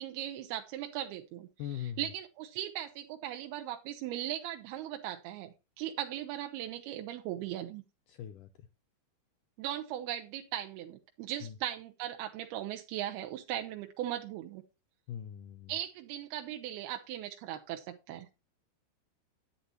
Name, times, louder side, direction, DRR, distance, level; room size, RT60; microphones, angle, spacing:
voice 1, 0.0-7.8 9.6-14.6 15.7-18.3, right 12 dB, 85° right, 5 dB, 2.8 m, -38 dB
voice 2, 1.6-2.1 8.1-8.5 11.4-11.6 15.1-15.7, left 10 dB, 90° left, 8 dB, 1.9 m, -40 dB
10.5 x 10.0 x 3.0 m, 0.26 s
omnidirectional pair, 4.5 m